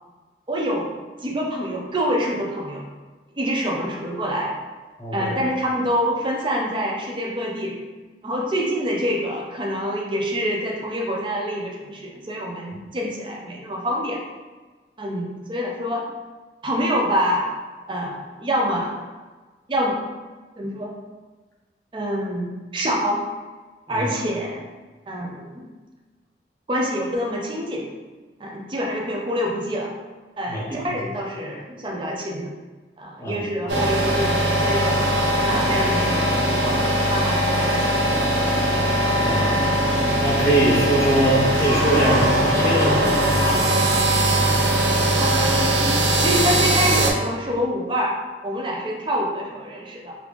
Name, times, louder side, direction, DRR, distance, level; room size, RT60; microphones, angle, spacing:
voice 1, 0.5-0.9 1.2-2.8 3.4-4.5 5.1-7.7 8.2-14.2 15.0-16.0 16.6-17.5 17.9-19.0 19.7-19.9 20.6-20.9 21.9-23.2 23.9-24.7 25.1-25.7 26.7-27.9 28.4-29.9 30.4-32.5 33.0-35.0 35.4-38.0 45.2-48.1 48.4-50.2, equal, 30° right, -1 dB, 0.5 m, -26 dB
voice 2, 5.0-5.4 23.9-24.1 30.5-30.6 33.2-33.4 35.9-36.0 39.2-39.5 40.2-43.6 44.3-44.5 44.9-45.2, right 1 dB, 15° left, -5 dB, 0.7 m, -23 dB
sound 1, 33.7-47.1, right 1 dB, 75° right, 0.6 m, -20 dB
3.2 x 2.5 x 3.3 m, 1.3 s
head